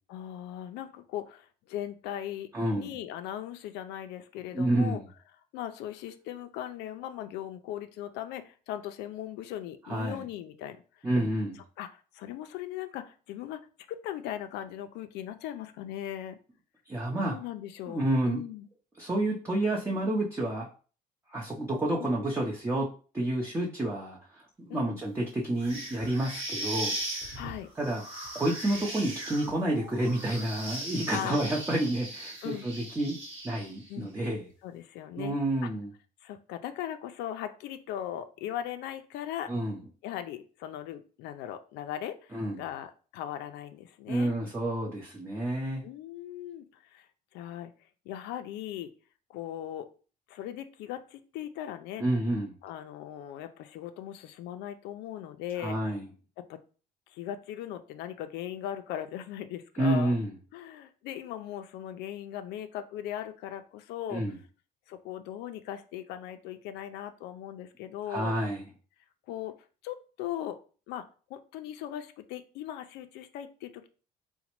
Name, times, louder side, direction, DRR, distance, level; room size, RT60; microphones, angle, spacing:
voice 1, 0.1-5.0 5.5-11.3 11.8-13.6 13.9-16.4 17.2-18.7 22.0-22.3 24.7-25.0 27.3-27.7 31.1-31.4 32.4-32.7 33.9-34.1 34.6-35.4 35.6-35.7 36.2-39.5 40.0-44.3 45.8-47.1 47.3-47.7 48.1-48.9 49.3-49.9 50.3-52.0 52.6-55.8 56.4-56.6 57.1-60.2 60.5-64.3 64.9-68.3 69.3-69.5 69.8-70.6 70.9-73.9, left 11 dB, 85° left, 9 dB, 0.4 m, -39 dB
voice 2, 2.5-2.9 4.5-5.0 9.9-10.2 11.0-11.6 16.9-17.4 17.9-18.4 19.0-20.7 21.3-22.9 23.1-26.9 27.8-28.0 28.3-33.2 33.4-34.5 35.2-35.9 39.5-39.8 42.3-42.6 44.1-45.8 52.0-52.5 55.6-56.0 59.8-60.3 64.1-64.3 68.1-68.6, right 1 dB, 15° right, -3 dB, 0.6 m, -29 dB
sound 1, 25.6-33.9, right 1 dB, 35° right, 1.1 m, -38 dB
3.9 x 2.1 x 2.9 m, 0.38 s
cardioid pair, 110°, 17 cm